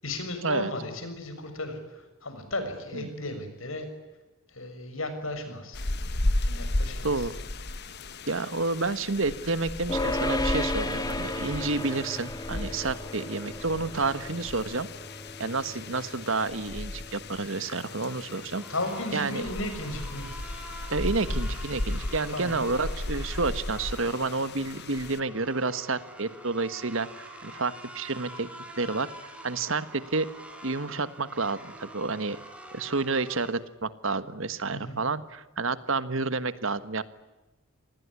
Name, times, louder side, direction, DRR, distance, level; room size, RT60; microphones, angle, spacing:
voice 1, 0.0-3.9 4.5-5.8 6.4-7.1 18.7-20.4 22.3-22.6 34.7-35.0, left 1 dB, 70° left, 8 dB, 6.7 m, -35 dB
sound 1, 5.7-25.2, left 1 dB, 50° left, 1.3 m, -35 dB
voice 2, 8.3-14.9 15.4-18.6 19.1-19.4 20.9-28.5 28.8-30.3 30.6-32.4 32.7-37.0, right 3 dB, 65° right, 14 dB, 1.5 m, -30 dB
sound 2, 9.9-21.2, left 1 dB, 20° left, 2.2 m, -35 dB
sound 3, 18.5-33.5, right 1 dB, 5° right, 4.3 m, -46 dB
27.0 x 20.0 x 9.8 m, 1.1 s
head